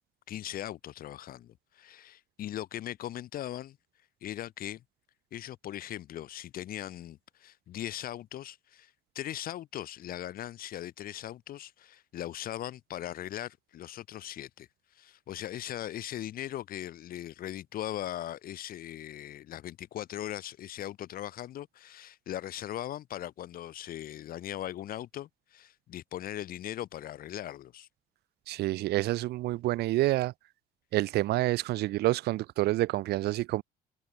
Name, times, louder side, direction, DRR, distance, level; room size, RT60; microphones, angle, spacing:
voice 1, 0.3-3.8 4.2-4.8 5.3-14.7 14.9-27.9, left 12 dB, 60° left, 1.0 m, -39 dB
voice 2, 28.5-30.3 30.9-33.6, right 17 dB, 75° right, 0.8 m, -28 dB
cardioid pair, 110°, 17 cm